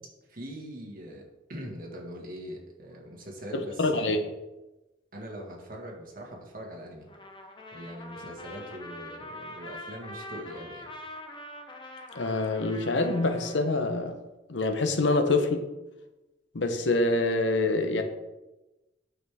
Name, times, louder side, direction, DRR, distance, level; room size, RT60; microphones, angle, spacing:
voice 1, 0.3-1.2 1.5-4.2 5.1-7.1 7.7-10.9, equal, 50° right, 0 dB, 1.7 m, -41 dB
voice 2, 3.5-4.2 12.1-14.2 14.5-15.6 16.5-18.0, left 2 dB, 70° left, 6 dB, 0.9 m, -26 dB
Trumpet, 7.1-13.6, left 1 dB, 25° left, 0.9 m, -44 dB
9.0 x 6.4 x 3.5 m, 1.1 s
head